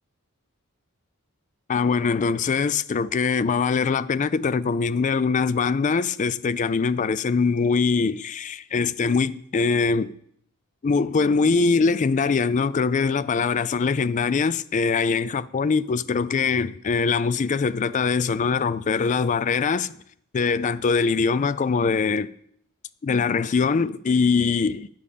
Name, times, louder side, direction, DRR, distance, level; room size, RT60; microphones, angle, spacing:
voice 1, 1.7-10.1 10.8-20.0 20.3-22.3 23.0-24.9, left 5 dB, 35° left, 0.3 m, -22 dB
10.0 x 6.7 x 5.3 m
head